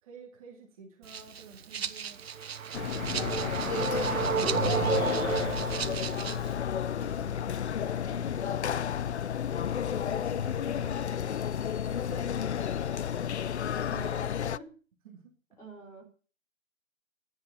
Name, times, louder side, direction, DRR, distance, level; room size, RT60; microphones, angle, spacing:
voice 1, 0.0-2.2 3.0-6.4 6.9-8.6 10.1-11.5 11.8-12.5 13.9-14.1 15.0-15.6, right 6 dB, 25° right, 1 dB, 2.6 m, -51 dB
Rattle (instrument), 1.0-6.6, right 7 dB, 50° right, 1.3 m, -39 dB
sound 1, 2.2-6.6, right 7 dB, 90° right, 1.1 m, -32 dB
sound 2, 2.7-14.6, left 9 dB, 55° left, 0.7 m, -31 dB
voice 2, 3.4-3.7 7.2-7.6 13.8-14.7 15.6-16.0, right 3 dB, 10° left, -1 dB, 3.6 m, -49 dB
15.5 x 10.5 x 7.0 m, 0.41 s
hypercardioid pair, 165°, 40 cm